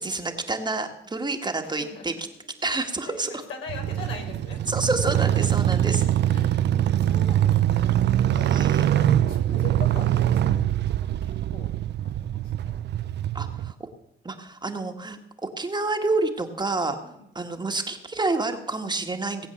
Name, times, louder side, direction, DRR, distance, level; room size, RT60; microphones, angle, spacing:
voice 1, 0.0-2.1 2.6-3.4 4.7-6.0 8.3-8.8 13.3-13.7 14.2-17.0 17.4-19.5, right 3 dB, 20° right, 5 dB, 1.8 m, -28 dB
voice 2, 1.6-2.2 2.9-4.6 6.2-7.9 8.4-11.7 12.0-12.8 13.2-13.5 17.0-17.2, left 4 dB, 85° left, 2 dB, 4.1 m, -42 dB
sound 1, 3.7-13.7, right 11 dB, 60° right, 0.6 m, -23 dB
19.0 x 8.1 x 7.1 m, 0.83 s
cardioid pair, 90°, 20 cm